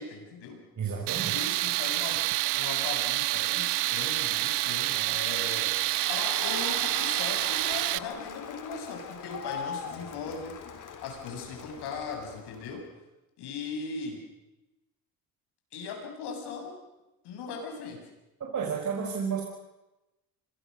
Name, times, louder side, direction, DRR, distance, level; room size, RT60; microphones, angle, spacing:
voice 1, 0.0-0.6 1.3-2.2 2.5-5.7 6.1-12.8 13.4-14.2 15.7-16.8 17.2-18.0, left 5 dB, 75° left, 3 dB, 7.7 m, -39 dB
voice 2, 0.8-1.4 18.5-19.4, right 6 dB, 45° right, -1 dB, 5.6 m, -31 dB
Tools, 1.1-8.0, right 20 dB, 90° right, 0.8 m, -28 dB
Crowd, 5.8-12.8, left 6 dB, 50° left, 3.7 m, -41 dB
26.5 x 22.5 x 6.7 m, 1.0 s
supercardioid pair, 85°, 39 cm